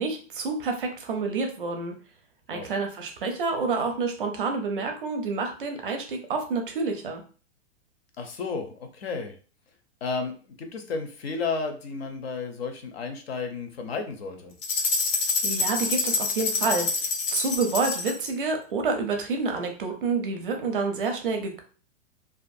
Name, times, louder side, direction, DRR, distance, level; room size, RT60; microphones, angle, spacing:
voice 1, 0.0-1.9 2.5-7.2 15.4-16.9 17.3-21.6, right 4 dB, 45° right, 5 dB, 0.5 m, -28 dB
voice 2, 8.2-9.4 10.0-10.3 10.6-14.5, left 4 dB, 55° left, 6 dB, 0.6 m, -32 dB
sound 1, 14.6-18.3, left 4 dB, 90° left, 0.8 m, -27 dB
2.5 x 2.4 x 2.5 m, 0.38 s
hypercardioid pair, 175°, 37 cm